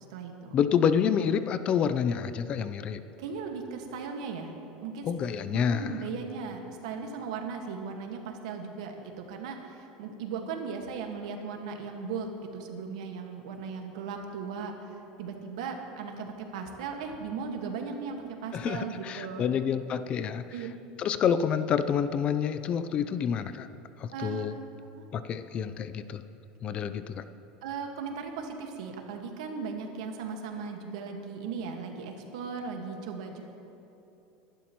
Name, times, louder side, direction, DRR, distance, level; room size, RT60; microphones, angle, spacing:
voice 1, 0.0-0.6 3.2-4.5 4.8-5.1 5.5-19.5 20.5-20.7 24.1-24.7 24.9-25.0 27.6-33.4, right 5 dB, 85° right, 3 dB, 1.6 m, -37 dB
voice 2, 0.5-3.0 5.1-6.0 18.5-20.4 21.0-23.7 24.0-24.5 25.1-26.2 26.6-27.2, left 7 dB, 35° left, 12 dB, 0.5 m, -28 dB
22.0 x 11.5 x 3.1 m, 3.0 s
supercardioid pair, 145°, 3 cm